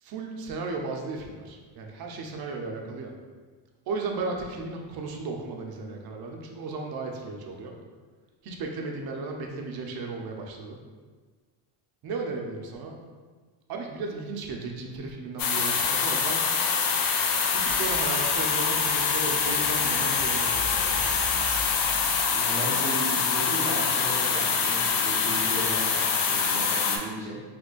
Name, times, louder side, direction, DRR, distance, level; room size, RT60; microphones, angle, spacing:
voice 1, 0.0-3.1 3.9-7.7 8.4-10.8 12.0-13.0 13.7-16.5 17.5-21.5, right 3 dB, 55° right, 2 dB, 0.6 m, -35 dB
sound 1, 15.4-27.0, left 6 dB, 50° left, 0.5 m, -25 dB
sound 2, 17.7-22.5, left 1 dB, 10° left, 1.4 m, -40 dB
voice 2, 22.3-27.4, right 1 dB, 15° right, -9 dB, 0.6 m, -35 dB
2.9 x 2.5 x 3.7 m, 1.4 s
cardioid pair, 115°, 43 cm